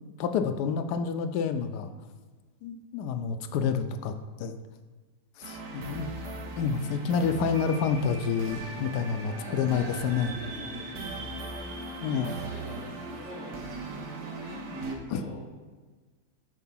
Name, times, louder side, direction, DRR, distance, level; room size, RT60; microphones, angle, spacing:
voice 1, 0.2-1.9 2.6-4.5 5.4-6.1 6.6-10.3 12.0-12.3 15.1-15.2, left 6 dB, 85° left, 8 dB, 1.2 m, -28 dB
sound 1, 5.4-15.0, right 3 dB, 85° right, 1.6 m, -39 dB
voice 2, 9.4-11.2 12.0-13.6 13.9-15.5, right 1 dB, 45° left, -9 dB, 2.1 m, -43 dB
8.2 x 4.6 x 5.7 m, 1.4 s
omnidirectional pair, 1.7 m